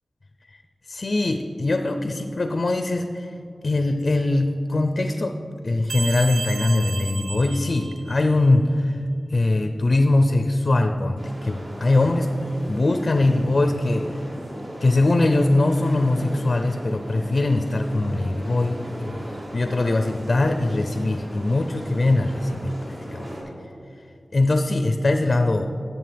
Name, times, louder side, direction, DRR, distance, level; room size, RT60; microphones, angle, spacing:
voice 1, 0.9-3.3 3.6-5.4 5.6-9.0 9.3-12.3 12.7-14.2 14.8-23.3 24.3-25.7, left 2 dB, 55° left, 7 dB, 0.4 m, -22 dB
sound 1, 5.9-8.5, right 4 dB, 85° right, 0.4 m, -33 dB
sound 2, 11.2-23.4, equal, 65° right, 2.1 m, -37 dB
10.5 x 7.3 x 3.3 m, 2.7 s
wide cardioid pair, 75°, 0 cm